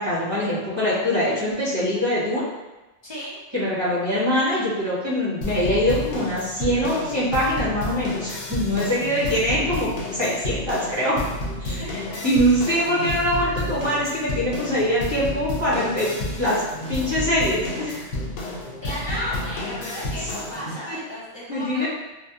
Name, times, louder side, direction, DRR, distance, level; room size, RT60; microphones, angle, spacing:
voice 1, 0.0-2.5 3.5-11.2 11.6-16.6 16.9-18.0 19.0-19.3 20.2-20.3 20.9-21.0 21.5-21.9, equal, 30° right, -10 dB, 0.7 m, -23 dB
voice 2, 3.0-3.3 11.8-12.3 18.8-21.9, left 1 dB, 30° left, -7 dB, 0.5 m, -34 dB
sound 1, 5.4-20.8, left 1 dB, 85° left, 0.9 m, -31 dB
2.7 x 2.3 x 2.3 m, 1.1 s
omnidirectional pair, 1.2 m